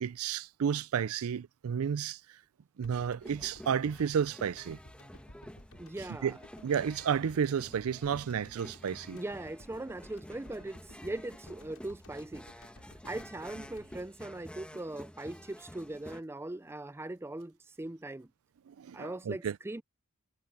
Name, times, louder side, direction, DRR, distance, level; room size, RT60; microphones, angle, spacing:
voice 1, 0.0-2.2 2.8-4.8 6.2-6.3 6.6-9.2 18.7-19.6, right 7 dB, 80° right, 0.4 m, -32 dB
sound 1, 2.8-15.2 15.5-15.6, left 1 dB, 90° left, 7.2 m, -56 dB
sound 2, 3.2-16.2, equal, 5° left, 1.3 m, -50 dB
voice 2, 5.8-6.4 9.1-12.7 13.0-18.3 18.9-19.8, right 2 dB, 10° right, 0.4 m, -40 dB
head